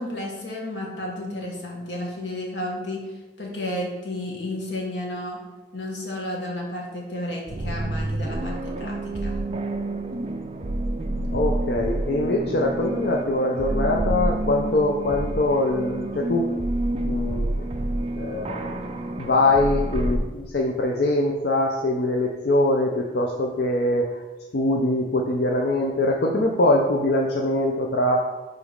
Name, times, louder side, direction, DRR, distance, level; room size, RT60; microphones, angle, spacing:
voice 1, 0.0-3.0 3.4-5.4 5.7-9.4, left 1 dB, 80° left, -1 dB, 1.5 m, -32 dB
sound 1, 7.5-20.2, right 1 dB, 30° right, 0.4 m, -28 dB
voice 2, 11.3-16.6 17.0-17.5 18.1-18.9 19.2-24.2 24.5-28.3, left 1 dB, 60° left, 0 dB, 0.5 m, -23 dB
5.0 x 4.0 x 5.1 m, 1.1 s
head